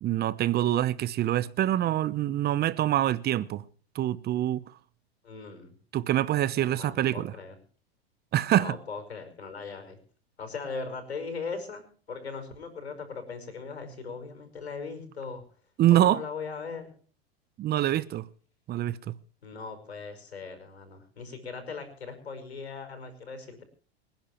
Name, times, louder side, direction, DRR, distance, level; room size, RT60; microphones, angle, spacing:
voice 1, 0.0-3.6 3.9-4.6 5.9-7.3 8.3-8.7 15.8-16.2 17.6-18.3 18.7-19.1, right 13 dB, 30° right, 0.9 m, -25 dB
voice 2, 5.2-5.8 6.5-7.6 8.6-10.0 10.4-15.4 15.9-16.9 19.4-23.6, left 4 dB, 85° left, 5.3 m, -39 dB
26.5 x 10.5 x 3.2 m
hypercardioid pair, 95°, 31 cm